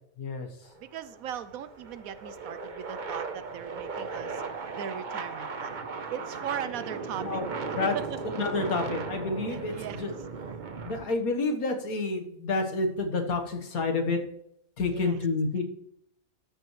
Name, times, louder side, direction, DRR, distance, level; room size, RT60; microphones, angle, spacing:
voice 1, 0.2-0.7 7.2-7.5 7.7-7.9 8.3-10.1 10.9-14.2 14.8-15.6, left 3 dB, 80° left, 4 dB, 1.9 m, -29 dB
sound 1, 0.6-11.1, right 4 dB, 40° right, 0.9 m, -37 dB
voice 2, 0.8-4.4 4.7-7.4 7.9-8.1 9.5-10.0 14.9-15.2, right 9 dB, 75° right, 13 dB, 1.1 m, -39 dB
13.5 x 8.2 x 3.2 m, 0.77 s
omnidirectional pair, 1.5 m